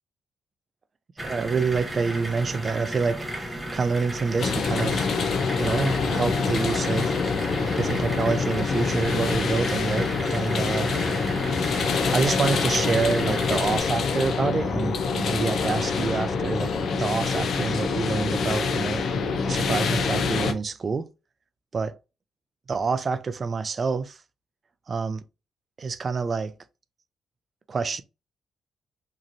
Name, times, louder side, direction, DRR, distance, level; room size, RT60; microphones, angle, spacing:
sound 1, 1.2-13.8, right 1 dB, 10° right, 0.7 m, -34 dB
voice 1, 1.2-5.1 5.6-7.2 7.8-11.0 12.1-16.7 17.0-19.1 19.4-21.1 21.7-22.0 22.7-24.2 24.9-25.2 25.8-26.5 27.7-28.0, right 4 dB, 40° right, 0.4 m, -27 dB
sound 2, 4.4-20.5, left 5 dB, 60° left, 0.6 m, -26 dB
3.0 x 2.5 x 2.5 m
cardioid pair, 90°, 0 cm